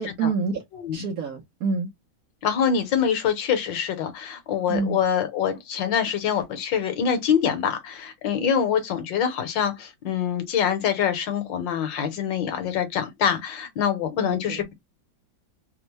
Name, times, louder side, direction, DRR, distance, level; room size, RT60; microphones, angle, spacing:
voice 1, 0.0-0.6 0.9-1.9 4.7-5.0 14.2-14.7, right 4 dB, 65° right, 0.9 m, -27 dB
voice 2, 2.4-14.7, left 8 dB, 70° left, 1.5 m, -25 dB
3.5 x 2.1 x 2.9 m
omnidirectional pair, 2.1 m